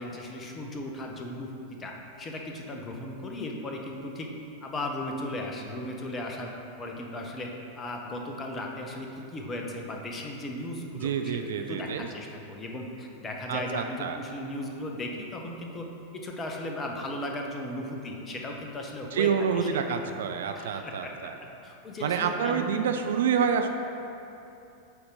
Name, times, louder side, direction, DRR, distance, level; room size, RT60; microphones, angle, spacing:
voice 1, 0.0-1.5 1.8-4.3 4.6-6.5 6.8-19.7 20.5-21.3 21.6-22.7, left 1 dB, 20° left, 1 dB, 0.9 m, -36 dB
voice 2, 11.0-12.1 13.5-14.2 19.1-21.3 22.0-23.7, right 7 dB, 60° right, 6 dB, 0.4 m, -28 dB
8.1 x 4.3 x 5.0 m, 2.8 s
figure-of-eight pair, 90°, 0 cm